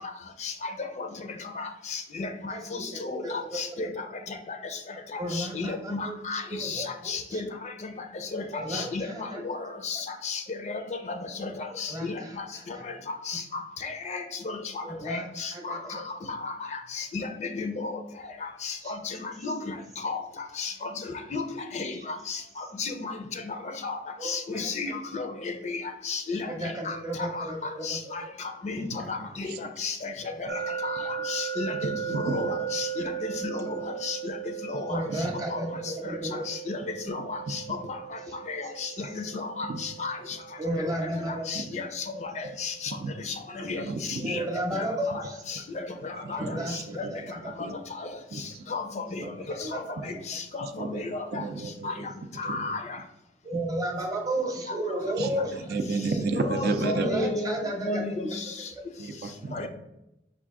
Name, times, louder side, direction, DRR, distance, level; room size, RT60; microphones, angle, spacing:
voice 1, 0.4-1.1 1.5-4.8 5.1-7.9 8.2-13.0 13.3-18.0 18.4-19.7 20.0-27.5 27.8-30.1 30.4-30.5 30.8-34.4 34.7-35.0 35.5-35.6 36.5-36.8 37.1-37.6 38.5-40.4 41.3-43.0 43.2-44.4 44.7-46.4 46.7-47.1 47.6-48.1 48.4-51.4 51.8-51.9 52.4-53.0 54.7-54.8 56.3-58.7 59.5-59.7, left 3 dB, 40° left, 7 dB, 0.4 m, -34 dB
voice 2, 2.5-3.9 5.2-6.1 6.5-7.4 8.5-9.4 11.9-12.8 14.8-15.9 18.8-18.9 24.2-24.7 26.4-28.3 30.2-30.3 34.9-36.4 40.6-41.6 42.1-42.5 44.2-45.4 46.4-47.4 49.5-49.9 53.4-55.8 57.0-58.0, right 1 dB, 20° right, 1 dB, 0.8 m, -33 dB
voice 3, 28.8-29.7 32.1-32.4 34.7-34.8 35.1-35.3 39.6-39.8 41.5-41.7 42.9-43.1 43.6-44.4 46.2-47.3 47.6-47.7 48.3-48.7 49.2-49.3 50.6-52.1 52.4-52.7 55.2-57.3 59.0-59.7, right 3 dB, 55° right, 6 dB, 0.4 m, -33 dB
sound 1, 30.5-43.4, right 8 dB, 80° right, 0.7 m, -37 dB
5.4 x 2.5 x 3.5 m, 0.88 s
head